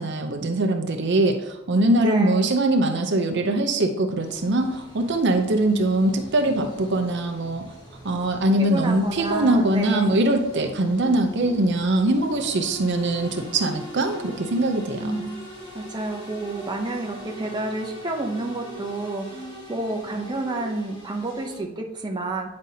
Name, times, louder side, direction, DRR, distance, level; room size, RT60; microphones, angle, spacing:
voice 1, 0.0-7.6 8.0-15.2, right 2 dB, 60° right, 5 dB, 0.7 m, -22 dB
voice 2, 2.0-2.5 8.6-10.2 15.0-15.4 15.7-22.5, right 2 dB, 20° right, 1 dB, 0.7 m, -30 dB
sound 1, 4.2-21.6, left 1 dB, 20° left, 1.6 m, -41 dB
9.1 x 5.2 x 2.8 m, 0.89 s
head